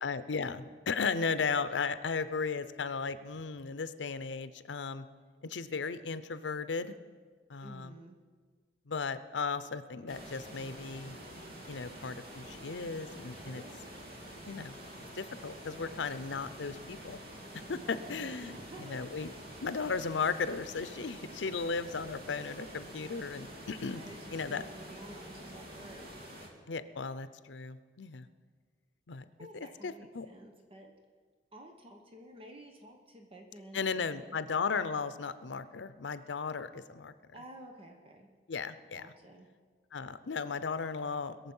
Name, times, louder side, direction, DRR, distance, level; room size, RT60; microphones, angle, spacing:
voice 1, 0.0-5.1 5.4-6.9 7.5-7.9 8.9-11.2 11.7-13.6 14.5-14.8 15.1-17.2 17.5-19.3 19.6-24.0 24.3-24.6 26.7-28.3 29.1-29.2 29.5-30.3 33.7-37.1 38.5-39.1 39.9-41.5, left 5 dB, 90° left, 13 dB, 0.6 m, -36 dB
voice 2, 7.6-8.2 13.5-13.8 17.7-19.2 23.9-26.1 29.4-30.9 31.5-34.4 37.3-38.3 38.9-39.5, right 1 dB, 30° right, 3 dB, 1.1 m, -51 dB
sound 1, 10.1-26.5, right 1 dB, 60° right, 1.9 m, -47 dB
21.5 x 7.3 x 5.5 m, 1.6 s
head